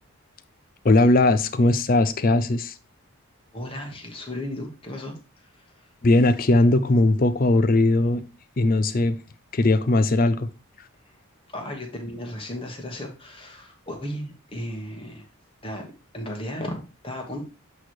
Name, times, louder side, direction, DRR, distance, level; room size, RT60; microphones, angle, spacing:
voice 1, 0.8-2.7 6.0-8.2 8.6-9.2 9.5-10.5, left 2 dB, 40° left, 0.5 m, -19 dB
voice 2, 3.5-5.9 11.0-11.1 11.5-15.3 15.6-17.4, left 1 dB, 25° left, 1.3 m, -35 dB
8.0 x 3.2 x 4.4 m
head